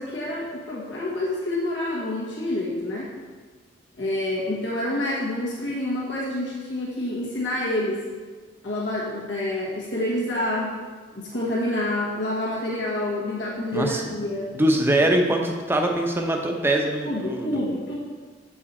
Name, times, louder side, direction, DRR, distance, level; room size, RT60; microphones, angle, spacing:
voice 1, 0.0-3.1 4.0-8.0 8.6-10.8 11.1-14.5 17.0-18.0, left 1 dB, 85° left, -5 dB, 1.3 m, -28 dB
voice 2, 13.7-14.0 14.5-17.6, right 1 dB, 15° right, 2 dB, 0.7 m, -23 dB
7.9 x 4.8 x 4.3 m, 1.5 s
head